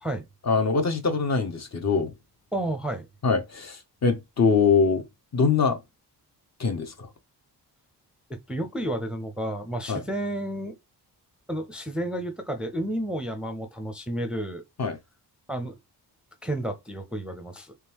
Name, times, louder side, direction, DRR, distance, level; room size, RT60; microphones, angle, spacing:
voice 1, 0.5-2.1 3.2-5.0 5.3-5.8 6.6-7.1 9.9-10.0 14.8-15.0, left 5 dB, 40° left, 0.8 m, -23 dB
voice 2, 2.5-3.0 8.3-10.7 11.5-14.6 15.5-15.8 16.4-17.7, right 1 dB, ahead, 0.5 m, -31 dB
3.7 x 3.4 x 2.9 m
wide cardioid pair, 145°, 40 cm